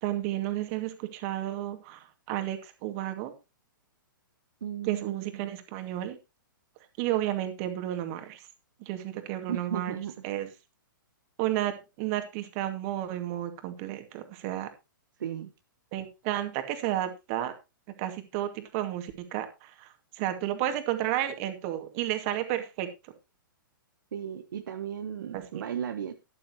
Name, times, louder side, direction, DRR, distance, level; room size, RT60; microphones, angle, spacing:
voice 1, 0.0-3.3 4.8-6.2 7.0-8.4 8.8-10.0 10.2-10.5 11.4-14.7 15.9-17.5 18.0-22.9 25.3-25.6, right 13 dB, 40° right, 7 dB, 2.2 m, -32 dB
voice 2, 4.6-5.6 9.5-10.1 15.2-15.5 24.1-26.1, right 9 dB, 65° right, 7 dB, 1.1 m, -35 dB
12.5 x 11.5 x 3.0 m, 0.26 s
hypercardioid pair, 120°, 11 cm